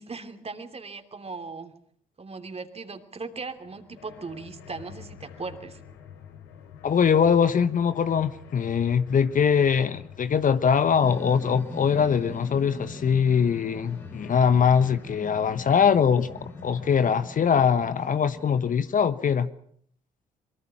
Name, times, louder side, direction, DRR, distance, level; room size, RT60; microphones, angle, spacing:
voice 1, 0.0-1.7 2.2-5.8, right 4 dB, 30° right, 3.0 m, -38 dB
sound 1, 3.4-19.1, left 7 dB, 70° left, 2.9 m, -47 dB
voice 2, 6.8-19.5, left 7 dB, 40° left, 1.2 m, -22 dB
sound 2, 11.0-19.4, left 1 dB, 10° left, 3.2 m, -42 dB
25.0 x 23.5 x 6.0 m
hypercardioid pair, 50°, 20 cm